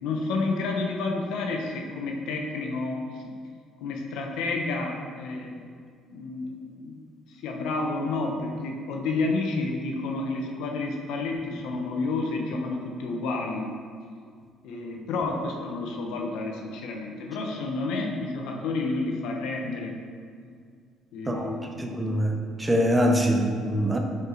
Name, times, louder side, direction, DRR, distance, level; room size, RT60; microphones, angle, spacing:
voice 1, 0.0-3.3 3.8-5.6 6.1-7.0 7.3-13.7 14.6-19.9 21.1-21.9, left 3 dB, 80° left, 2 dB, 0.8 m, -30 dB
voice 2, 21.8-24.0, equal, 10° right, 3 dB, 0.5 m, -24 dB
5.5 x 4.7 x 3.8 m, 2.1 s
cardioid pair, 140°, 0 cm